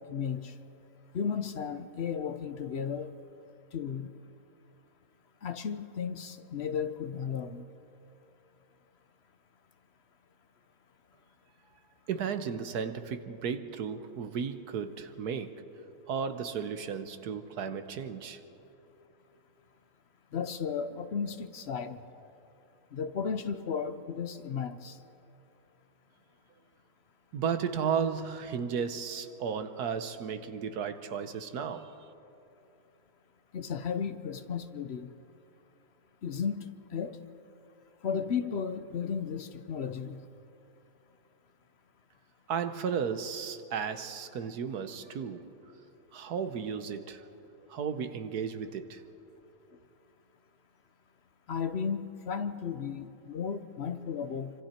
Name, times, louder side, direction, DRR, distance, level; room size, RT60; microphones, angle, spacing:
voice 1, 0.1-0.5 1.1-3.1 3.7-4.1 5.4-7.6 20.3-22.0 22.9-25.0 33.5-35.1 36.2-37.2 38.0-40.2 51.5-54.5, left 6 dB, 50° left, 9 dB, 0.9 m, -34 dB
voice 2, 12.1-15.6 16.1-18.4 27.3-31.9 42.5-45.4 46.1-47.2 47.7-49.0, right 7 dB, 70° right, 9 dB, 1.5 m, -34 dB
27.0 x 25.5 x 4.4 m, 2.8 s
omnidirectional pair, 1.7 m